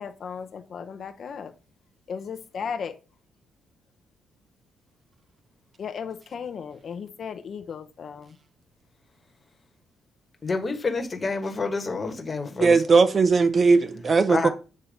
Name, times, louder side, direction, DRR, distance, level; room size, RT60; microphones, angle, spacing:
voice 1, 0.0-1.5 2.1-2.9 5.8-8.3, left 6 dB, 50° left, 0.7 m, -35 dB
voice 2, 10.4-12.8 14.3-14.5, left 4 dB, 30° left, 1.3 m, -28 dB
voice 3, 12.6-14.5, right 4 dB, 35° right, 0.6 m, -18 dB
8.4 x 2.8 x 5.1 m
cardioid pair, 110°, 0 cm